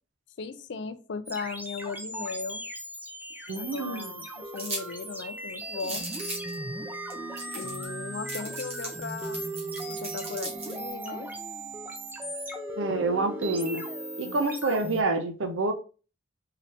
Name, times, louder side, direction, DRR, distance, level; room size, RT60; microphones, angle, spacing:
voice 1, 0.4-2.6 3.5-4.3 4.5-6.1 7.5-9.4 9.8-11.3, left 4 dB, 65° left, 0.4 m, -37 dB
sound 1, 1.3-15.0, right 1 dB, 10° right, 0.5 m, -37 dB
voice 2, 3.5-4.1 12.8-13.8 14.2-15.7, right 3 dB, 90° right, 0.6 m, -28 dB
sound 2, 4.6-4.8 5.2-5.3 5.8-6.5 7.1-7.2 7.4-7.9 8.3-10.8, right 2 dB, 35° right, 1.7 m, -37 dB
3.9 x 2.8 x 3.3 m
head